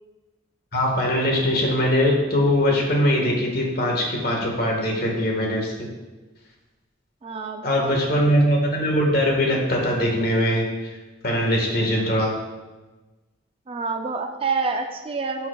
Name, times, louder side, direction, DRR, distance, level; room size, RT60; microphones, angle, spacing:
voice 1, 0.7-5.9 7.6-11.0 11.2-12.3, equal, 50° left, -1 dB, 1.5 m, -21 dB
voice 2, 7.2-7.9 13.7-15.5, right 4 dB, 30° right, 5 dB, 0.4 m, -27 dB
10.5 x 5.9 x 2.3 m, 1.2 s
head